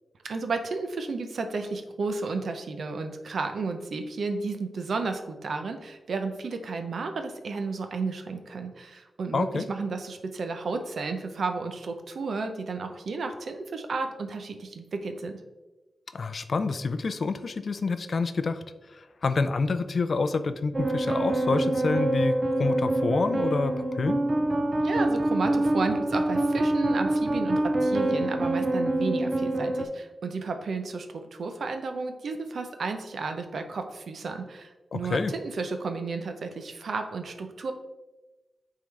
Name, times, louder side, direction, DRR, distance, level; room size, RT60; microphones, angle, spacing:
voice 1, 0.2-15.4 24.8-37.7, right 4 dB, 75° right, 6 dB, 0.7 m, -32 dB
voice 2, 9.3-9.7 16.1-18.6 18.9-24.3 34.9-35.3, left 4 dB, 55° left, 11 dB, 0.4 m, -28 dB
sound 1, 20.7-29.9, right 1 dB, 30° right, 0.5 m, -26 dB
9.2 x 3.7 x 3.3 m, 1.1 s
wide cardioid pair, 95°, 0 cm